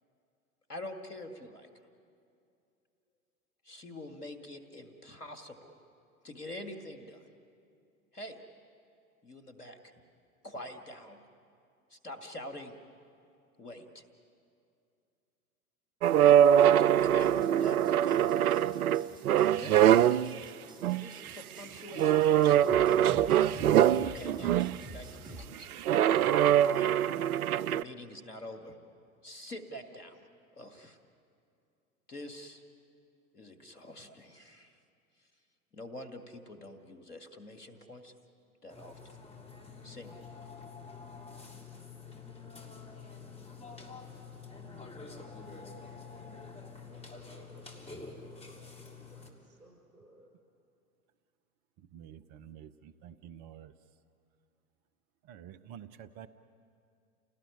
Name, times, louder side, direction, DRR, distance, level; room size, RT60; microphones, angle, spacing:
voice 1, 0.7-1.7 3.6-5.7 6.2-7.2 8.1-8.4 9.2-9.8 10.4-11.2 11.9-12.8 13.6-14.0 16.1-18.7 19.5-20.1 20.9-23.0 24.0-24.6 24.9-25.7 26.4-27.1 27.7-28.7 29.2-30.2 30.6-31.0 32.1-32.6 33.3-34.8 35.2-35.3 35.7-38.1 38.6-39.2 39.8-40.2, left 1 dB, 90° left, 6 dB, 2.1 m, -46 dB
sound 1, 16.0-20.4 20.8-21.3 22.0-24.8 25.8-27.8, right 10 dB, 70° right, 0.6 m, -23 dB
sound 2, 17.0-25.5, equal, 10° right, 2.2 m, -50 dB
Burping eructation, 38.7-49.3, left 4 dB, 15° left, 3.6 m, -48 dB
voice 2, 46.8-50.3, right 1 dB, 90° right, 0 dB, 6.6 m, -59 dB
voice 3, 51.9-53.7 55.2-56.3, right 9 dB, 40° right, 12 dB, 0.9 m, -49 dB
29.5 x 18.5 x 9.7 m, 2.5 s
figure-of-eight pair, 85°, 45 cm